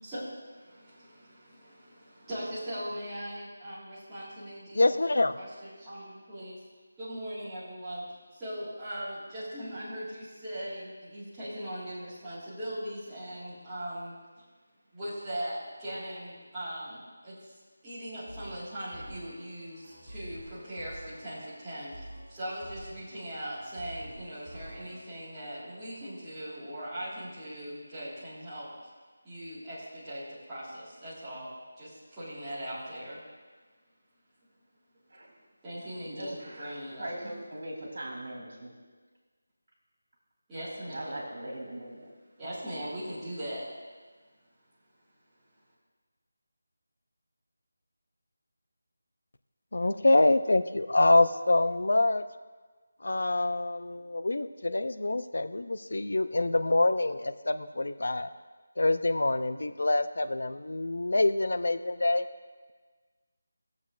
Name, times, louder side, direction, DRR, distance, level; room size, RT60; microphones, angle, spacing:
voice 1, 0.0-4.9 5.4-6.6 7.0-14.1 14.9-28.9 29.2-33.2 35.6-37.3 40.5-41.2 42.4-43.7, equal, 5° right, -14 dB, 1.7 m, -40 dB
voice 2, 4.7-5.4 49.7-52.2 53.0-58.3 58.8-62.3, left 2 dB, 65° left, 12 dB, 0.4 m, -26 dB
sound 1, 18.3-25.0, right 1 dB, 30° right, 2.8 m, -48 dB
voice 3, 36.1-38.7 40.9-42.1, right 1 dB, 60° right, 0 dB, 2.8 m, -40 dB
17.5 x 7.2 x 2.4 m, 1.4 s
figure-of-eight pair, 180°, 0 cm